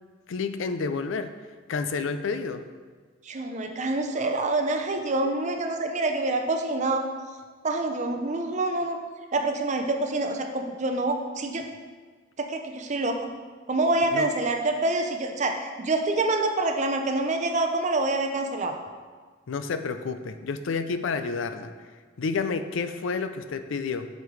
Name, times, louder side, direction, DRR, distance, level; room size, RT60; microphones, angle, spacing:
voice 1, 0.3-1.3 1.7-2.6 14.1-14.3 19.5-21.7 22.2-24.1, left 4 dB, 75° left, 9 dB, 0.4 m, -29 dB
voice 2, 3.3-7.0 7.6-9.0 9.3-11.6 12.4-13.3 13.7-18.7, right 2 dB, 35° right, 4 dB, 0.6 m, -26 dB
8.1 x 5.1 x 3.2 m, 1.5 s
head